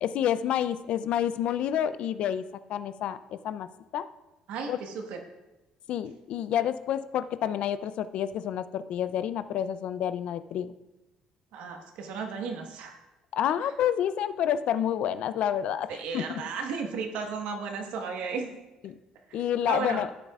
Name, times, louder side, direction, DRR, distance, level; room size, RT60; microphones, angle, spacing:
voice 1, 0.0-2.4 2.7-3.2 3.4-3.7 3.9-4.1 4.7-4.8 5.9-10.7 13.3-16.4 18.8-18.9 19.3-20.1, left 10 dB, 65° left, 13 dB, 0.4 m, -29 dB
voice 2, 4.5-5.2 11.5-13.0 15.9-18.6 19.3-19.4 19.7-20.0, right 5 dB, 80° right, 3 dB, 1.3 m, -34 dB
14.0 x 8.2 x 2.4 m, 1.0 s
cardioid pair, 120°, 2 cm